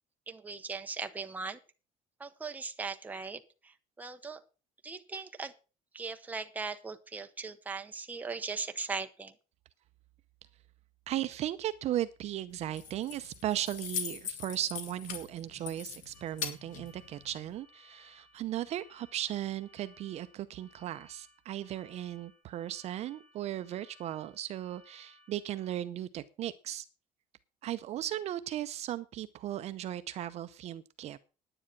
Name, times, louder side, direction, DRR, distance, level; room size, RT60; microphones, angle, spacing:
voice 1, 0.3-1.6 2.2-4.4 4.8-5.5 5.9-9.3, right 4 dB, 10° right, 6 dB, 0.9 m, -39 dB
voice 2, 11.1-26.9 27.6-31.2, right 12 dB, 45° right, 11 dB, 0.6 m, -36 dB
Keys jangling, 12.5-17.6, left 7 dB, 60° left, 2.2 m, -42 dB
sound 1, 16.1-25.8, left 1 dB, 15° left, 2.7 m, -62 dB
10.0 x 9.9 x 5.9 m, 0.34 s
cardioid pair, 175°, 15 cm